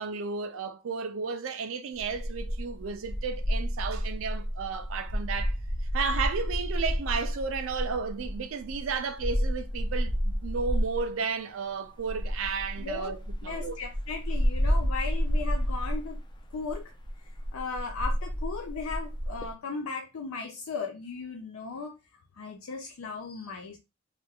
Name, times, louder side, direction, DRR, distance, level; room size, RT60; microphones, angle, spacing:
voice 1, 0.0-5.6 5.9-13.8, right 5 dB, 70° right, 0.4 m, -33 dB
sound 1, 2.0-11.1 12.0-19.5, equal, 20° left, 0.4 m, -30 dB
voice 2, 12.8-13.2 13.4-16.2 16.5-16.9 17.5-23.8, left 4 dB, 80° left, 0.5 m, -37 dB
3.3 x 2.3 x 2.8 m
head